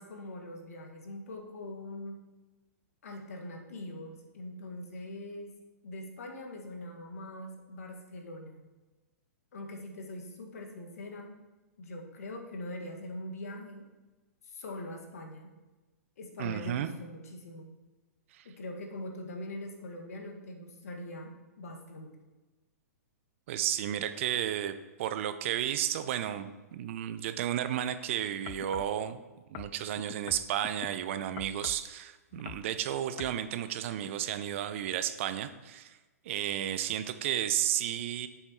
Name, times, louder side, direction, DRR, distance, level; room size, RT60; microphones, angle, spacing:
voice 1, 0.0-2.2 3.0-5.5 5.8-8.6 9.5-11.4 11.8-13.9 14.4-15.5 16.2-17.8 18.4-22.1, left 1 dB, 65° left, 3 dB, 1.9 m, -42 dB
voice 2, 16.4-16.9 18.3-18.5 23.5-29.2 29.5-36.0 36.2-38.3, right 11 dB, 50° right, 11 dB, 0.7 m, -33 dB
sound 1, 28.5-29.0 29.5-30.9 31.4-31.9 32.3-32.7 33.2-33.4 34.0-34.1, left 14 dB, 35° left, 0.4 m, -44 dB
8.8 x 7.2 x 4.6 m, 1.2 s
figure-of-eight pair, 110°, 9 cm